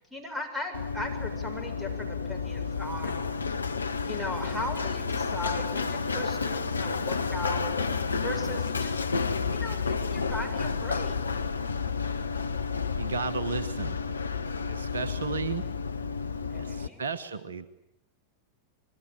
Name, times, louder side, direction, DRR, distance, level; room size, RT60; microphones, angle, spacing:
voice 1, 0.1-3.2 4.0-7.8 8.2-9.0 9.5-11.2 16.5-17.0, left 1 dB, 5° right, 4 dB, 7.2 m, -38 dB
Run, 0.7-16.9, left 5 dB, 75° left, 1.0 m, -31 dB
voice 2, 13.0-14.0 14.7-15.6 16.6-17.7, right 5 dB, 70° right, 13 dB, 1.2 m, -33 dB
26.5 x 22.0 x 9.1 m, 0.84 s
figure-of-eight pair, 90°, 0 cm